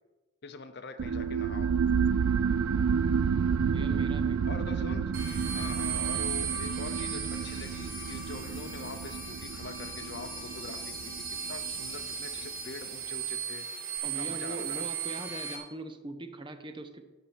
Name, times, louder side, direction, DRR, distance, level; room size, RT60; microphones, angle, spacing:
voice 1, 0.4-1.7 4.4-5.1 5.5-13.6 14.2-14.9, left 4 dB, 50° left, 9 dB, 0.6 m, -44 dB
sound 1, 1.0-12.1, right 6 dB, 85° right, 0.4 m, -30 dB
voice 2, 3.7-4.5 14.0-17.1, right 2 dB, 20° right, 8 dB, 0.6 m, -41 dB
sound 2, 5.1-15.6, right 7 dB, 40° right, 1.6 m, -37 dB
7.3 x 5.4 x 7.1 m, 1.2 s
head